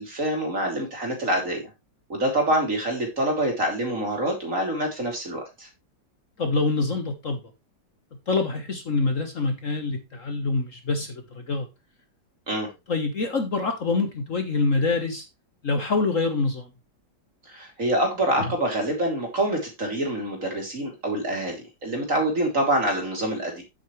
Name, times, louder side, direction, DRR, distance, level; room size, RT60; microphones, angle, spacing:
voice 1, 0.0-1.6 2.1-5.7 12.5-12.7 17.4-23.6, right 1 dB, 45° right, 3.4 m, -26 dB
voice 2, 6.4-7.4 8.3-11.7 12.9-15.3 15.6-16.7, left 3 dB, 45° left, 1.5 m, -25 dB
9.2 x 8.3 x 3.2 m
omnidirectional pair, 2.0 m